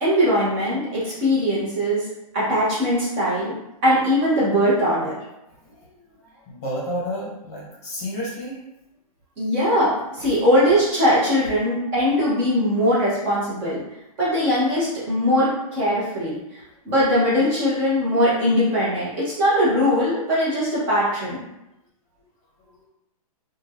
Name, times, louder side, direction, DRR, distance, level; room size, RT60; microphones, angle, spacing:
voice 1, 0.0-2.0 2.3-3.5 3.8-5.1 9.4-13.8 14.2-16.6 16.8-21.4, equal, 25° right, -8 dB, 0.9 m, -20 dB
voice 2, 5.6-8.6 10.2-10.3, equal, 25° left, -6 dB, 0.9 m, -32 dB
2.7 x 2.3 x 3.4 m, 0.89 s
hypercardioid pair, 170°, 19 cm